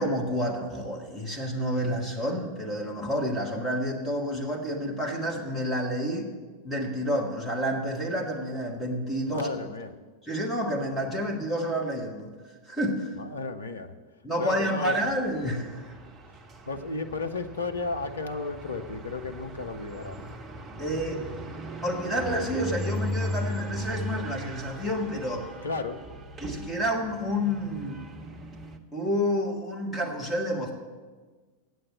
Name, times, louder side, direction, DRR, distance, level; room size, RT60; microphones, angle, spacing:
voice 1, 0.0-6.3 6.6-9.5 10.2-12.3 12.6-13.2 14.2-15.9 20.8-21.2 21.8-25.5 26.4-28.0 28.9-30.7, equal, 10° left, -1 dB, 1.5 m, -29 dB
voice 2, 9.3-9.9 13.2-13.9 14.4-15.0 16.7-20.3 25.6-26.0, left 3 dB, 70° left, 7 dB, 0.7 m, -33 dB
sound 1, 15.0-28.8, equal, 20° right, 0.9 m, -38 dB
8.7 x 7.9 x 8.3 m, 1.4 s
figure-of-eight pair, 90°, 0 cm